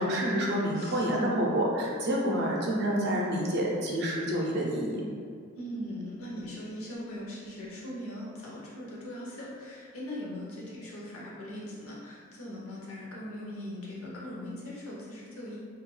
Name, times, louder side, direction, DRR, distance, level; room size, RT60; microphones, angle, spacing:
voice 1, 0.0-5.0, equal, 50° right, -2 dB, 0.5 m, -28 dB
voice 2, 0.7-1.4 5.6-15.6, left 1 dB, 75° left, -5 dB, 0.7 m, -40 dB
2.3 x 2.1 x 3.1 m, 2.1 s
head